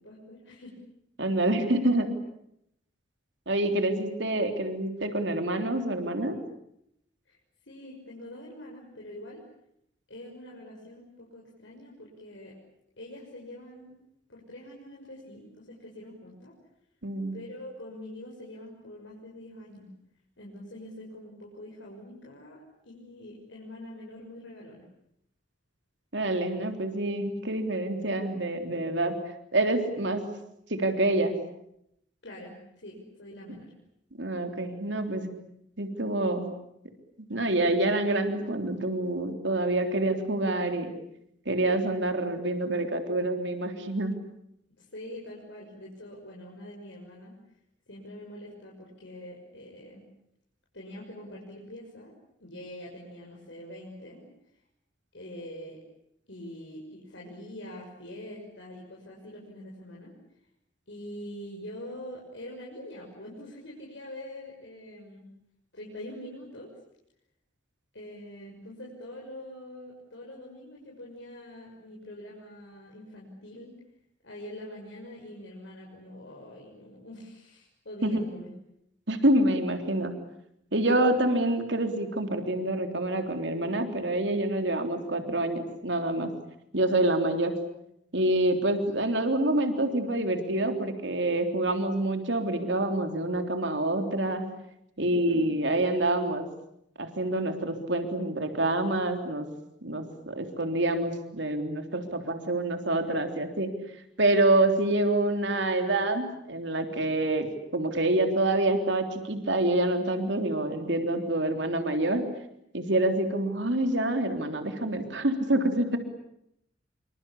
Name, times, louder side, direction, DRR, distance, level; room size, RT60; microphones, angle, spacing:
voice 1, 0.0-0.7 7.2-7.4 7.6-9.4 10.1-12.5 13.0-13.9 14.3-16.5 17.3-19.9 20.4-24.9 32.2-33.7 44.8-47.3 47.9-50.0 50.7-52.1 52.4-54.2 55.1-55.8 56.3-60.1 60.9-65.2 65.7-66.7 67.9-73.7 74.2-78.5 95.0-95.5, left 1 dB, 80° left, -3 dB, 6.6 m, -44 dB
voice 2, 1.2-2.1 3.5-6.3 17.0-17.4 26.1-29.2 29.5-30.2 30.7-31.3 34.2-35.3 35.8-36.5 37.2-40.9 41.5-44.2 78.0-78.2 79.1-80.1 80.7-86.3 86.7-87.5 88.1-94.4 95.0-96.5 97.0-99.5 99.8-103.7 104.2-107.5 107.7-112.3 112.7-116.0, right 1 dB, 70° right, 6 dB, 3.6 m, -27 dB
27.0 x 25.5 x 8.6 m, 0.77 s
head